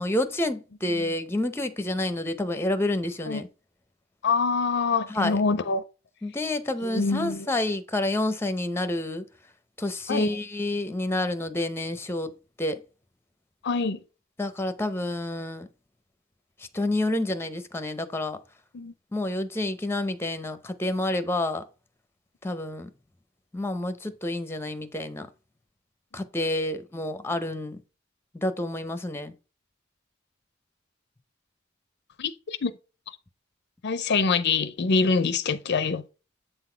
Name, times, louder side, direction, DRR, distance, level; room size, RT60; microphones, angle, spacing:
voice 1, 0.0-3.5 5.1-5.4 6.2-9.3 9.8-12.3 12.6-12.8 14.4-15.7 16.7-18.4 19.1-21.6 22.4-22.9 23.5-25.3 26.1-27.8 28.3-29.3, left 1 dB, 10° left, 0.7 m, -29 dB
voice 2, 4.2-5.8 6.8-7.5 10.1-10.3 13.6-14.0 18.7-18.9 32.2-32.7 33.8-36.0, left 4 dB, 55° left, 0.5 m, -25 dB
8.0 x 4.0 x 4.4 m
head